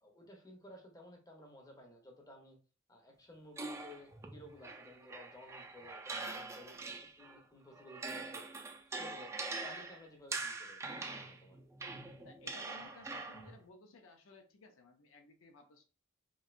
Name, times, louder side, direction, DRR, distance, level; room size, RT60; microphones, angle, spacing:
voice 1, 0.0-2.6 2.9-8.4 8.9-9.3 9.6-11.6, left 1 dB, 20° left, 0.6 m, -55 dB
sound 1, 3.6-7.4 7.7-13.6, right 3 dB, 15° right, 0.3 m, -44 dB
voice 2, 12.2-15.8, left 3 dB, 80° left, 0.5 m, -58 dB
3.1 x 2.6 x 2.4 m
head